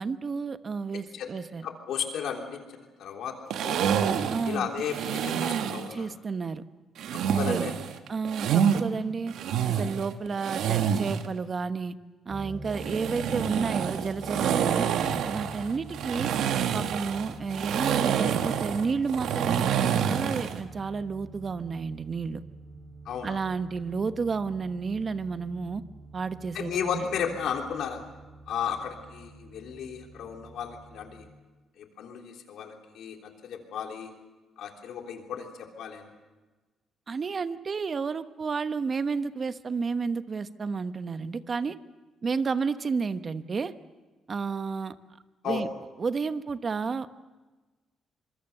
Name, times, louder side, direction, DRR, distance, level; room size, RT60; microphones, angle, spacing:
voice 1, 0.0-1.7 4.3-4.7 5.9-6.6 7.5-7.7 8.1-9.3 9.6-12.0 12.2-14.9 15.2-16.3 16.7-22.4 23.2-25.8 26.1-27.1 37.1-41.8 42.2-43.7 44.3-44.9 45.4-45.7 46.0-47.1, right 5 dB, 40° right, 12 dB, 1.0 m, -31 dB
voice 2, 1.6-3.4 3.6-3.9 4.4-6.1 7.3-7.7 23.0-23.4 26.5-28.0 28.5-31.2 31.8-34.1 34.6-36.1 45.4-45.7, left 7 dB, 75° left, 3 dB, 3.4 m, -34 dB
sound 1, 3.5-5.9 7.0-8.8 9.3-11.3 12.7-20.6, right 8 dB, 80° right, 1.4 m, -27 dB
sound 2, 12.3-31.3, right 2 dB, 5° right, 3.2 m, -46 dB
25.5 x 22.0 x 6.8 m, 1.2 s
cardioid pair, 90°, 0 cm